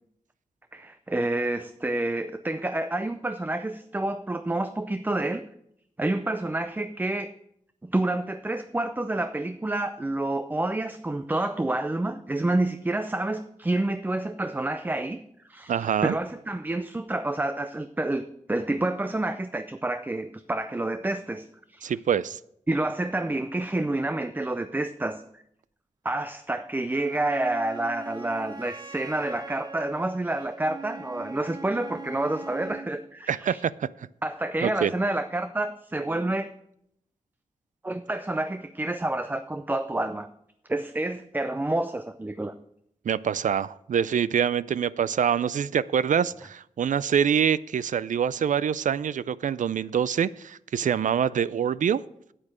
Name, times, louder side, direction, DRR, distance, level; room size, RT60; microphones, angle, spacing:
voice 1, 0.7-5.5 6.0-7.3 7.8-21.9 22.7-25.4 26.0-33.6 34.2-36.5 37.8-40.3 40.7-42.5, right 2 dB, 15° right, 11 dB, 0.4 m, -29 dB
voice 2, 15.7-16.2 21.8-22.4 33.3-33.9 34.6-34.9 43.1-52.0, right 8 dB, 80° right, 19 dB, 0.4 m, -25 dB
Wind instrument woodwind instrument, 26.9-32.9, right 3 dB, 30° right, 0.9 m, -41 dB
8.9 x 8.4 x 6.3 m, 0.74 s
wide cardioid pair, 120°, 13 cm